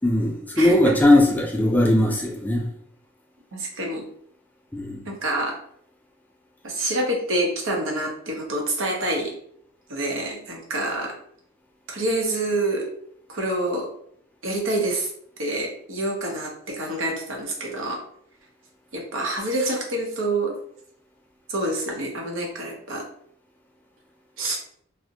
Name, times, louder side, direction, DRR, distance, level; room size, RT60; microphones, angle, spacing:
voice 1, 0.0-2.6 4.7-5.0, left 1 dB, 10° left, -1 dB, 0.4 m, -19 dB
voice 2, 0.6-0.9 3.5-4.0 5.1-5.6 6.6-9.4 9.9-11.1 11.9-12.9 13.3-13.9 14.4-15.1 15.4-18.0 18.9-20.6 21.5-23.1 24.4-24.6, right 1 dB, 85° right, 0 dB, 0.7 m, -27 dB
2.5 x 2.0 x 2.7 m, 0.64 s
head